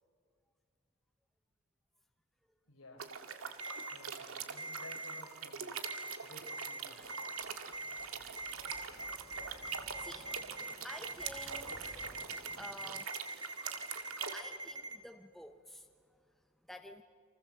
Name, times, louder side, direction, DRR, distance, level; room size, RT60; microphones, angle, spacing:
voice 1, 2.6-3.1 3.9-5.7 6.2-7.2 7.9-8.4, left 1 dB, 90° left, -3 dB, 4.3 m, -56 dB
sound 1, 3.0-14.4, right 6 dB, 80° right, 1.9 m, -44 dB
Ringtone, 3.6-3.9 4.6-5.2 5.8-6.2 6.5-6.8 7.1-7.4 7.7-8.1 8.4-15.0, right 2 dB, 20° right, 1.6 m, -43 dB
voice 2, 7.0-13.0 13.7-17.0, equal, ahead, 6 dB, 0.7 m, -53 dB
29.0 x 24.5 x 7.4 m, 2.1 s
head